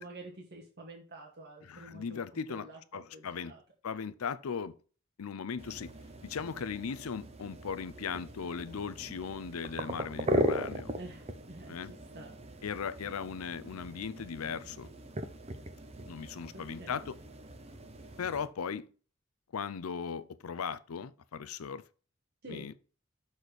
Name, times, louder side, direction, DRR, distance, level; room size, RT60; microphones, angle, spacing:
voice 1, 0.0-3.6 11.0-12.4 16.5-16.9 22.4-22.7, right 1 dB, 50° right, 1.3 m, -48 dB
voice 2, 1.6-3.5 3.8-4.8 5.2-5.9 6.2-10.9 11.7-11.9 12.6-14.9 16.1-17.2 18.2-18.9 19.5-21.8 22.5-22.7, left 6 dB, 85° left, 0.5 m, -38 dB
sound 1, 5.6-18.5, right 1 dB, 30° right, 0.7 m, -38 dB
6.3 x 4.2 x 5.0 m
head